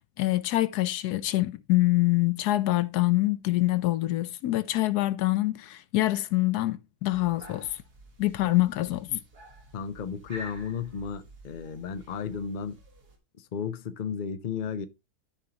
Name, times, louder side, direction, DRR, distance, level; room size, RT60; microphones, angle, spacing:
voice 1, 0.2-7.8 8.2-9.2, left 17 dB, 85° left, 1.2 m, -25 dB
sound 1, 7.1-13.2, left 1 dB, 80° right, 2.4 m, -49 dB
voice 2, 9.7-12.8 13.4-14.9, left 6 dB, 45° left, 0.6 m, -34 dB
13.0 x 5.4 x 2.9 m
omnidirectional pair, 1.6 m